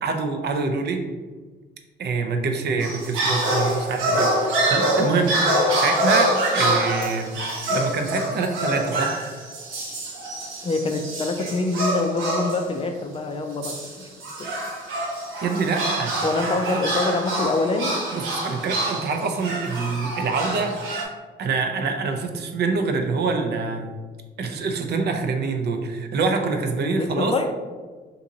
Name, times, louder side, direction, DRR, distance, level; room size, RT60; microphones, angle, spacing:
voice 1, 0.0-1.0 2.0-7.4 7.7-9.1 15.4-16.1 18.1-20.8 21.4-24.0 24.4-27.3, right 4 dB, 55° right, 5 dB, 0.5 m, -25 dB
sound 1, 2.8-12.7 13.6-21.0, right 1 dB, 85° right, 0.9 m, -25 dB
voice 2, 10.6-13.8 14.4-14.5 16.2-17.9 26.8-27.5, left 3 dB, 30° left, 5 dB, 0.4 m, -25 dB
2.8 x 2.6 x 3.8 m, 1.4 s
cardioid pair, 90°, 20 cm